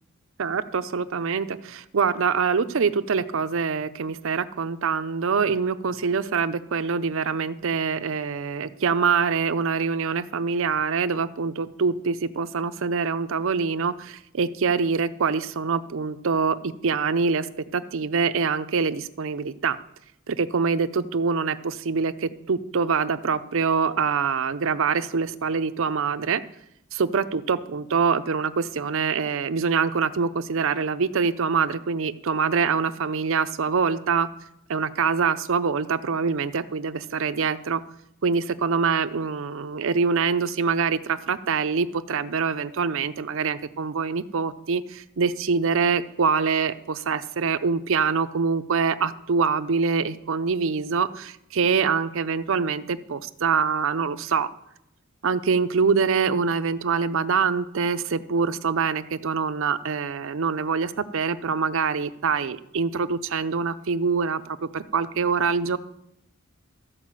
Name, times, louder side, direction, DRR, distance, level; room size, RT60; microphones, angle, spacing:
voice 1, 0.4-17.5 17.7-19.8 20.3-26.4 26.9-34.3 34.7-37.8 38.2-54.5 55.2-65.8, right 5 dB, 65° right, 13 dB, 0.6 m, -25 dB
13.5 x 4.8 x 7.4 m, 0.81 s
head